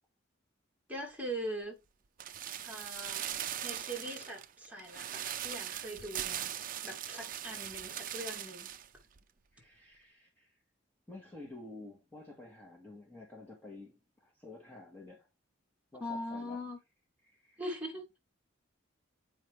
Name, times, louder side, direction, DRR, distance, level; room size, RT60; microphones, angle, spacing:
voice 1, 0.9-1.8 2.6-3.3 3.6-8.7 16.0-16.8 17.6-18.2, equal, 10° right, 2.6 m, -41 dB
sound 1, 2.2-8.9 9.2-9.3, right 10 dB, 45° right, 0.5 m, -40 dB
voice 2, 9.5-10.6 11.1-15.3 15.9-16.6 17.2-17.6, left 2 dB, 10° left, 1.8 m, -51 dB
8.8 x 5.2 x 3.2 m
head